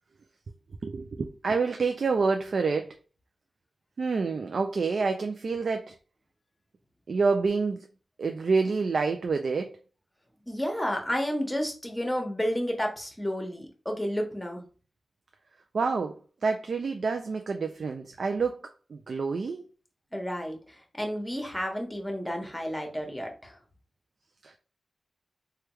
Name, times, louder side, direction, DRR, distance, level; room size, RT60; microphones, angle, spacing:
voice 1, 0.8-2.9 4.0-5.9 7.1-7.9 8.2-9.8 15.7-16.2 16.4-18.6 18.9-19.6 24.4-24.6, right 4 dB, 70° right, 0.3 m, -27 dB
voice 2, 10.5-14.6 20.1-23.6, equal, 10° left, 1.0 m, -31 dB
3.4 x 2.2 x 3.0 m
cardioid pair, 65°, 0 cm